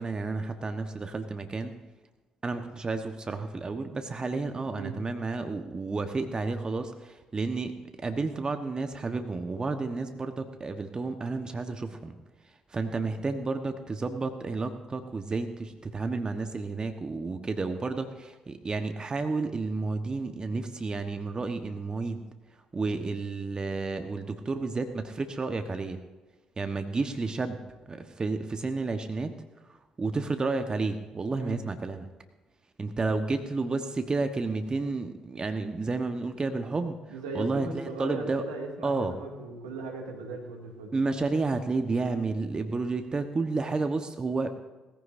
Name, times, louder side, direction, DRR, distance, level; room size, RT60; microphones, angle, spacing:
voice 1, 0.0-1.7 2.4-7.7 8.0-12.2 12.7-22.3 22.7-26.0 26.6-27.6 27.9-29.3 30.0-32.1 32.8-37.0 37.3-38.4 38.8-39.1 40.9-44.5, right 3 dB, 30° right, 7 dB, 1.2 m, -31 dB
voice 2, 37.1-40.9, right 3 dB, 85° right, 0 dB, 2.4 m, -38 dB
20.0 x 15.0 x 2.7 m, 1.2 s
hypercardioid pair, 45°, 3 cm